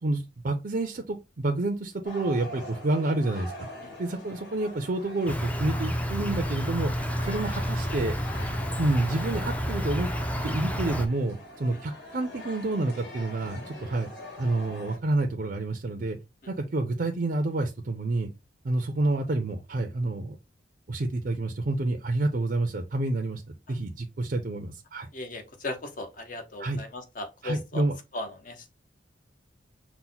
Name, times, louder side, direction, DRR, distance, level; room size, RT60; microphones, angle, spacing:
voice 1, 0.0-3.5 4.0-6.9 7.2-8.2 8.8-10.1 10.4-14.1 14.4-16.2 16.5-18.3 18.6-20.4 20.9-23.4 23.7-25.1 26.6-26.8 27.4-27.9, right 2 dB, 50° right, 0.5 m, -28 dB
sound 1, 2.0-15.0, left 1 dB, 70° left, 2.1 m, -44 dB
Insect, 5.3-11.1, equal, 10° left, 0.5 m, -29 dB
voice 2, 25.1-27.8 28.1-28.7, left 2 dB, 45° left, 0.9 m, -37 dB
5.7 x 2.2 x 3.9 m
head